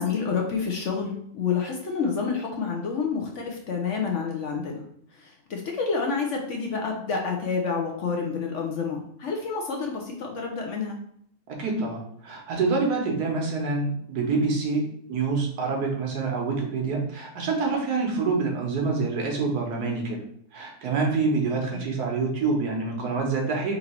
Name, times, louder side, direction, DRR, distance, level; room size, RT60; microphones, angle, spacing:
voice 1, 0.0-4.8 5.1-11.0 21.7-21.9, left 5 dB, 60° left, 1 dB, 0.9 m, -29 dB
voice 2, 11.5-14.8 15.1-20.2 20.5-23.8, right 4 dB, 80° right, 0 dB, 1.5 m, -26 dB
3.9 x 2.7 x 4.4 m, 0.67 s
omnidirectional pair, 1.7 m